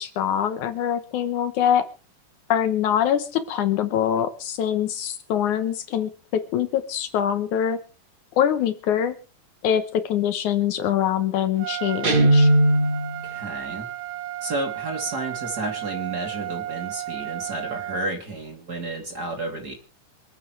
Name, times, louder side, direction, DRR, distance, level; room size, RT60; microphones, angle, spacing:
voice 1, 0.0-1.8 2.5-7.8 8.4-9.2 9.6-12.5, left 9 dB, 70° left, 10 dB, 2.3 m, -24 dB
Trumpet, 11.6-18.1, right 14 dB, 90° right, 2.5 m, -34 dB
Guitar, 12.0-13.2, right 1 dB, 70° right, 0.5 m, -17 dB
voice 2, 13.1-13.9 14.4-19.7, right 2 dB, 30° right, 2 dB, 3.2 m, -31 dB
27.0 x 9.3 x 3.3 m, 0.34 s
omnidirectional pair, 3.7 m